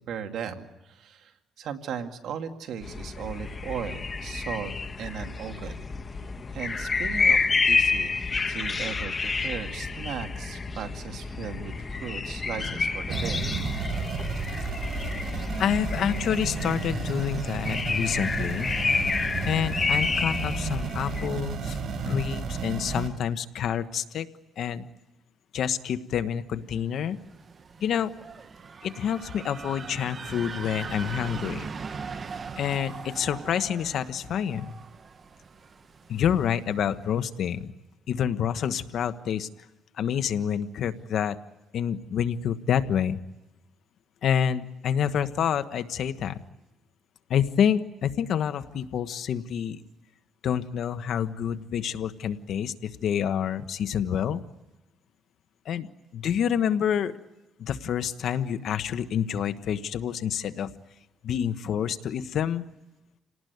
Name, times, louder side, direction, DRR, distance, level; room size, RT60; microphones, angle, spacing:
voice 1, 0.1-5.7 6.5-8.1 8.5-13.5 15.1-15.3, right 7 dB, 75° right, 5 dB, 2.2 m, -37 dB
sound 1, 2.8-21.3, left 4 dB, 30° left, 1.5 m, -29 dB
sound 2, 13.1-23.1, right 5 dB, 60° right, 4.3 m, -32 dB
voice 2, 15.6-18.7 19.4-24.3 24.6-24.9 25.5-27.2 27.8-28.1 28.8-31.7 32.6-34.8 36.1-37.7 38.1-39.5 40.0-41.4 41.7-43.2 44.2-46.4 47.3-49.8 50.4-54.4 55.6-57.1 57.6-60.7 61.2-62.6, left 9 dB, 70° left, 11 dB, 1.2 m, -28 dB
sound 3, 26.9-36.8, right 5 dB, 40° right, 1.1 m, -40 dB
28.0 x 19.0 x 9.4 m, 1.0 s
cardioid pair, 100°, 0 cm